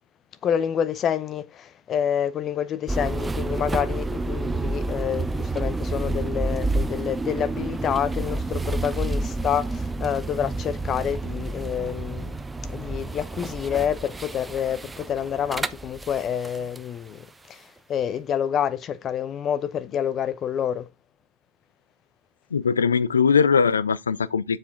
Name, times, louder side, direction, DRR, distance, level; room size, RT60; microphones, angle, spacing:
voice 1, 0.4-12.3 12.7-17.6 17.9-20.9, left 9 dB, 35° left, 0.7 m, -28 dB
sound 1, 2.9-16.8, right 2 dB, 15° right, 0.5 m, -29 dB
voice 2, 22.5-24.6, left 6 dB, 80° left, 0.3 m, -20 dB
6.8 x 5.1 x 3.7 m
figure-of-eight pair, 75°, 0 cm